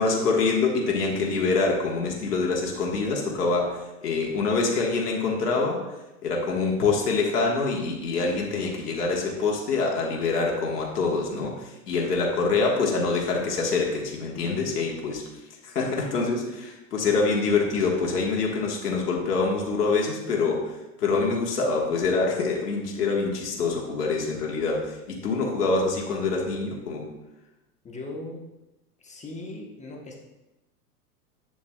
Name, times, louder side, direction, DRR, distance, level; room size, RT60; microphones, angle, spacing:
voice 1, 0.0-5.8 6.2-15.2 15.6-27.1, left 4 dB, 85° left, -1 dB, 1.5 m, -25 dB
voice 2, 27.8-28.5 29.0-30.2, left 2 dB, 15° left, 0 dB, 1.1 m, -38 dB
7.7 x 7.0 x 2.3 m, 0.99 s
hypercardioid pair, 110°, 46 cm